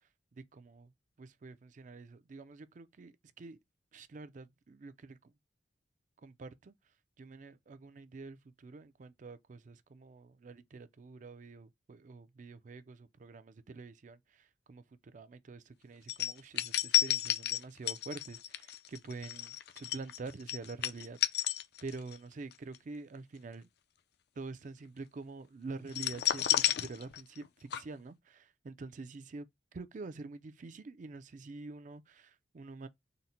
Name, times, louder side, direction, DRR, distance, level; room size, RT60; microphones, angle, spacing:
voice 1, 0.3-0.9 1.2-3.6 3.9-5.3 6.2-6.7 7.2-14.8 15.1-21.4 21.8-23.7 24.4-29.5 29.7-32.9, right 3 dB, 45° right, 0.4 m, -47 dB
sound 1, 16.1-22.2 22.5-22.8 25.9-27.5 27.7-27.8, left 12 dB, 65° left, 0.4 m, -32 dB
3.9 x 2.1 x 4.1 m
head